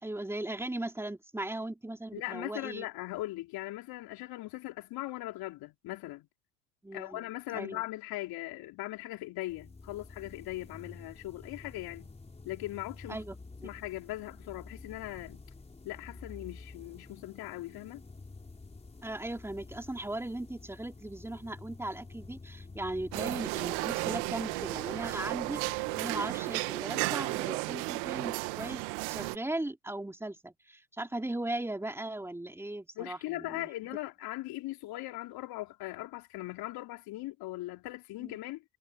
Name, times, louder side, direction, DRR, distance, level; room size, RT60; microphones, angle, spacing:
voice 1, 0.0-2.8 6.8-7.3 7.5-7.8 13.1-13.4 13.6-13.7 19.0-33.7 38.2-38.4, right 1 dB, 5° right, 3.3 m, -38 dB
voice 2, 2.1-6.3 6.9-12.1 12.4-13.2 13.6-15.4 15.8-18.0 33.0-38.6, left 17 dB, 55° left, 4.1 m, -39 dB
sound 1, 9.5-27.0, left 3 dB, 15° left, 4.6 m, -50 dB
sound 2, 23.1-29.4, right 26 dB, 65° right, 2.0 m, -34 dB
hypercardioid pair, 85°, 43 cm